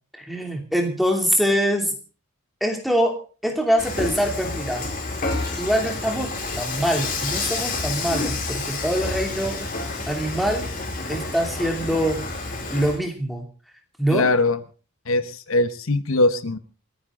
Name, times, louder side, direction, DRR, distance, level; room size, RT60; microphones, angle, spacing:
voice 1, 0.1-1.9 2.6-4.9 5.6-9.7 10.1-10.7 11.1-12.2 12.7-13.4 14.0-14.3, equal, ahead, 2 dB, 2.8 m, -24 dB
Dishes pots and pans / Frying (food), 3.8-13.0, left 3 dB, 40° left, 4.1 m, -29 dB
voice 2, 14.1-14.6 15.1-16.6, left 2 dB, 75° left, 12 dB, 1.0 m, -21 dB
28.5 x 10.0 x 3.8 m, 0.37 s
head